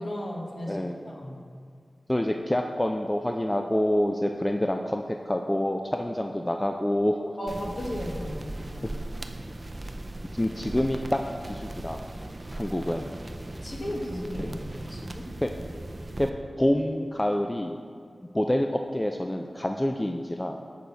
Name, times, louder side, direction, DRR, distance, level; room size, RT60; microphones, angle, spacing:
voice 1, 0.0-1.4 7.4-9.0 13.6-14.6 14.9-15.3, equal, 55° left, -1 dB, 1.4 m, -35 dB
voice 2, 0.7-1.0 2.1-7.2 8.8-8.9 10.3-12.0 12.5-13.1 14.4-14.5 15.4-15.5 16.2-16.3 16.6-17.8 18.3-20.6, left 1 dB, 20° left, 4 dB, 0.4 m, -27 dB
sound 1, 7.5-16.3, right 1 dB, 40° right, 0.5 m, -38 dB
7.3 x 6.6 x 4.0 m, 2.2 s
cardioid pair, 40°, 0 cm